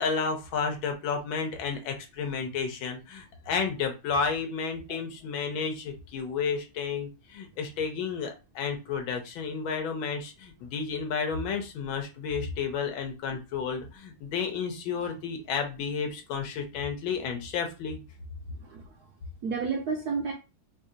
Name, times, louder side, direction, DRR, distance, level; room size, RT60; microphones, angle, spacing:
voice 1, 0.0-18.0, left 5 dB, 75° left, 1.5 m, -31 dB
voice 2, 18.6-19.0 19.4-20.3, right 5 dB, 75° right, 0.9 m, -31 dB
4.8 x 2.4 x 2.7 m
omnidirectional pair, 2.3 m